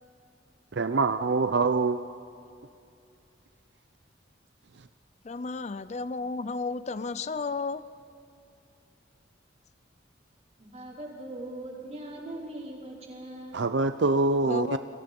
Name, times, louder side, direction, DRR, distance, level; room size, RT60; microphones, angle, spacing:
voice 1, 0.7-2.0 13.5-14.8, right 3 dB, 70° right, 10 dB, 0.6 m, -24 dB
voice 2, 5.2-7.8 14.5-14.8, left 4 dB, 40° left, 15 dB, 0.5 m, -33 dB
voice 3, 10.6-13.6, right 1 dB, 35° right, -2 dB, 4.9 m, -40 dB
30.0 x 22.5 x 5.4 m, 2.6 s
head